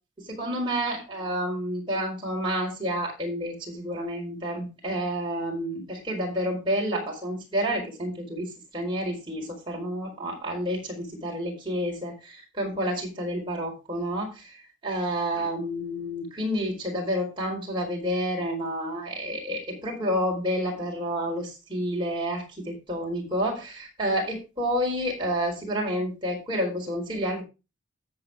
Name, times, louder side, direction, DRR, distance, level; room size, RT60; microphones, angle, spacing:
voice 1, 0.3-27.4, equal, 25° right, -1 dB, 4.4 m, -29 dB
13.5 x 7.8 x 3.6 m, 0.29 s
head